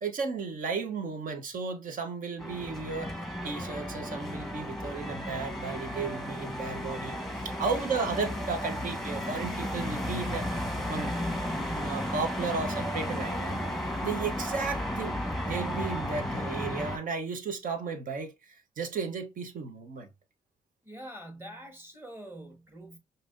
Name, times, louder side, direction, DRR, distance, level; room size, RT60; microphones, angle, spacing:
voice 1, 0.0-3.1 3.4-7.1 7.4-10.5 10.9-11.1 11.7-13.6 14.0-15.2 15.5-20.1, right 4 dB, 60° right, 0.9 m, -34 dB
sound 1, 2.4-17.0, equal, ahead, 1.3 m, -34 dB
voice 2, 20.8-23.0, right 1 dB, 15° right, 1.6 m, -45 dB
5.1 x 2.7 x 2.5 m
hypercardioid pair, 45°, 16 cm